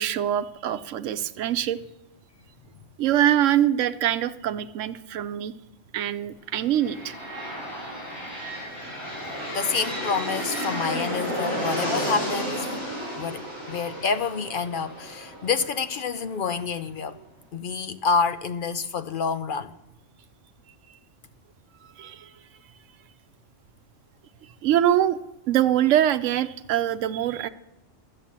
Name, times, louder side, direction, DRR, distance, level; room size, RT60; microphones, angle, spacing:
voice 1, 0.0-1.8 3.0-5.5 5.9-7.2 22.0-22.3 24.6-25.2 25.5-27.5, right 11 dB, 90° right, 1.0 m, -23 dB
sound 1, 6.7-16.5, equal, 25° left, 5.7 m, -32 dB
voice 2, 9.5-12.8 13.2-17.2 17.5-19.7, left 5 dB, 55° left, 0.6 m, -28 dB
13.0 x 7.6 x 7.3 m
omnidirectional pair, 1.3 m